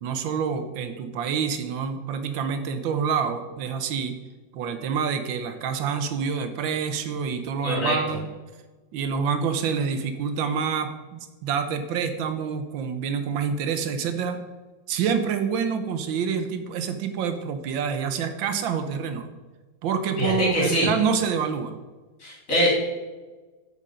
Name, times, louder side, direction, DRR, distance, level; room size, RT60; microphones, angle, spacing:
voice 1, 0.0-4.1 4.5-8.3 8.9-14.4 14.9-19.3 19.8-21.7, right 6 dB, 90° right, 8 dB, 1.6 m, -27 dB
voice 2, 7.6-8.2 20.2-20.9 22.2-22.8, equal, 40° left, -5 dB, 3.4 m, -23 dB
8.5 x 5.3 x 4.9 m, 1.3 s
omnidirectional pair, 2.1 m